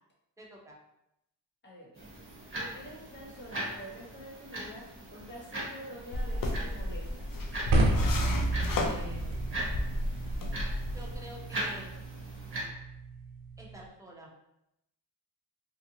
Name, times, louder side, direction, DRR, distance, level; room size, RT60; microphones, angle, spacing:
voice 1, 0.4-0.8 8.6-9.6 10.9-11.9 13.6-14.3, equal, 5° right, -3 dB, 0.7 m, -48 dB
voice 2, 1.6-2.1 2.6-4.8 5.1-7.3, equal, 25° left, -4 dB, 1.0 m, -47 dB
sound 1, 1.9-12.6, right 1 dB, 30° right, 1.0 m, -41 dB
sound 2, 6.1-11.2, left 1 dB, 50° left, 0.5 m, -32 dB
sound 3, 7.7-13.8, right 2 dB, 90° right, 0.5 m, -33 dB
2.7 x 2.4 x 2.7 m, 0.84 s
cardioid pair, 75°, 45 cm